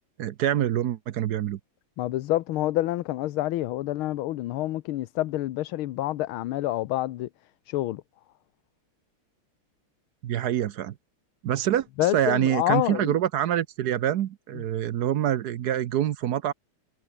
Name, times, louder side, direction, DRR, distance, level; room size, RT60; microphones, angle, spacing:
voice 1, 0.2-1.6 10.2-10.9 11.4-11.9 12.1-16.5, right 11 dB, 65° right, 1.0 m, -26 dB
voice 2, 2.0-7.3 7.7-8.0 12.0-13.1, left 15 dB, 75° left, 1.6 m, -27 dB
omnidirectional pair, 2.4 m